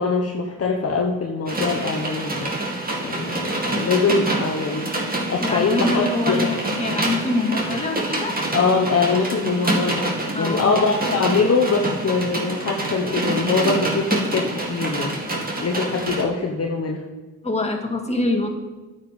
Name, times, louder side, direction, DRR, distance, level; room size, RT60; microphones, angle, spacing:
voice 1, 0.0-2.5 3.0-6.5 8.5-10.0 10.3-15.2 15.6-17.0, left 4 dB, 45° left, 1 dB, 1.2 m, -23 dB
sound 1, 1.5-16.2, right 2 dB, 25° right, 2.4 m, -26 dB
voice 2, 5.4-8.4 10.3-10.9 17.4-18.5, left 2 dB, 20° left, 1 dB, 2.1 m, -25 dB
8.8 x 5.6 x 7.2 m, 1.2 s
supercardioid pair, 60°, 35 cm